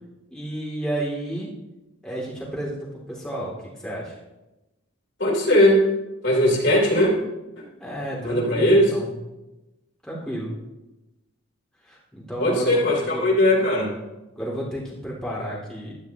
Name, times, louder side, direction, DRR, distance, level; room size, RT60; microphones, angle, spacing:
voice 1, 0.3-1.5 2.0-4.2 7.8-9.2 10.0-10.6 11.8-13.2 14.4-15.9, right 1 dB, 5° left, -6 dB, 2.6 m, -32 dB
voice 2, 5.2-5.8 6.2-7.1 8.2-8.9 12.4-13.9, left 1 dB, 55° left, -2 dB, 3.2 m, -19 dB
16.0 x 11.5 x 2.9 m, 1.0 s
head